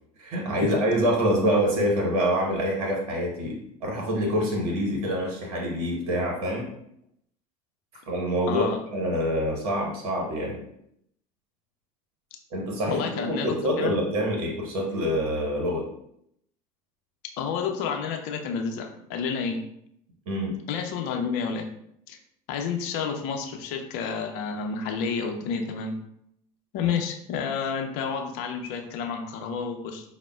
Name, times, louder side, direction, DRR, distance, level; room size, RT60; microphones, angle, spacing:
voice 1, 0.2-3.6 3.8-6.7 7.9-10.6 12.5-15.9 20.3-20.6 26.8-26.9, equal, 70° right, -1 dB, 0.9 m, -26 dB
voice 2, 8.5-8.8 12.9-13.9 17.4-19.6 20.7-21.7 22.1-22.2 22.5-25.9 26.7-30.0, left 6 dB, 60° left, 4 dB, 0.6 m, -30 dB
4.8 x 2.1 x 2.3 m, 0.73 s
hypercardioid pair, 75°, 19 cm